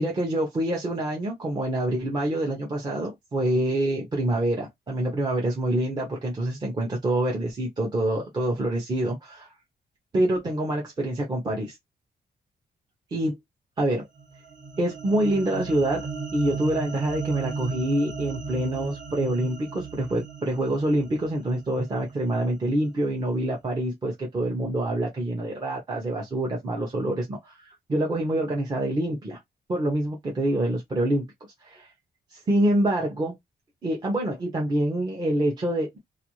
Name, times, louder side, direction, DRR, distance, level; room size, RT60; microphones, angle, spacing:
voice 1, 0.0-9.5 10.1-11.8 13.1-13.4 13.8-14.1 14.8-27.5 27.9-29.4 29.7-31.3 31.6-31.9 32.3-33.3 33.8-36.0, right 1 dB, 25° right, 0.6 m, -26 dB
sound 1, 14.2-22.6, right 5 dB, 50° right, 1.0 m, -36 dB
2.4 x 2.3 x 2.9 m
wide cardioid pair, 180°, 17 cm